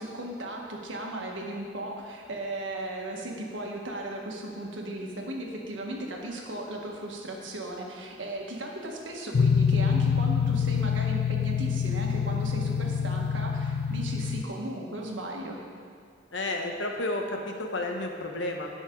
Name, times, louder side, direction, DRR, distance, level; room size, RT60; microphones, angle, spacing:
voice 1, 0.0-15.6, right 1 dB, 90° right, -1 dB, 1.7 m, -36 dB
sound 1, 9.3-14.4, left 6 dB, 65° left, 0.4 m, -26 dB
voice 2, 16.3-18.7, left 2 dB, 80° left, 2 dB, 1.3 m, -31 dB
18.5 x 6.3 x 3.9 m, 2.2 s
head